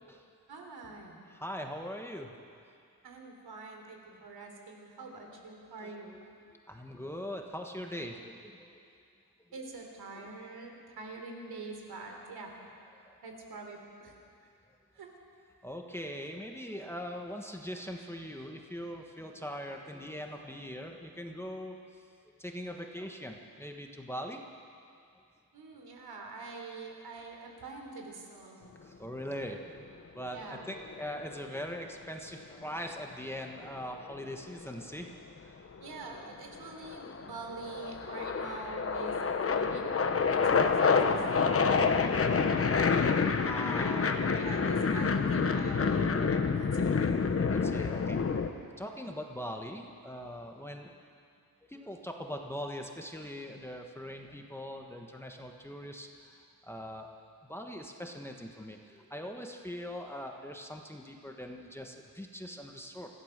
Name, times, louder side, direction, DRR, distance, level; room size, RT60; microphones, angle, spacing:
voice 1, 0.5-1.2 3.0-6.1 9.5-12.5 13.2-14.1 15.0-15.1 25.5-28.6 30.3-30.7 35.8-40.0 40.3-42.5 43.8-47.1, right 3 dB, 75° right, 2 dB, 3.6 m, -45 dB
voice 2, 1.3-2.3 4.1-4.2 5.8-6.2 6.7-8.8 13.0-13.2 15.6-21.8 22.4-24.4 28.8-29.8 30.1-35.2 35.5-35.6 43.4-44.2 47.4-48.4 48.8-51.0 51.6-57.1 57.5-63.1, equal, 5° left, 2 dB, 1.3 m, -41 dB
sound 1, 30.6-31.7 33.6-34.8 35.8-36.2 36.6-48.5, left 5 dB, 35° left, 1.0 m, -28 dB
25.5 x 15.5 x 6.6 m, 2.4 s
wide cardioid pair, 150°, 38 cm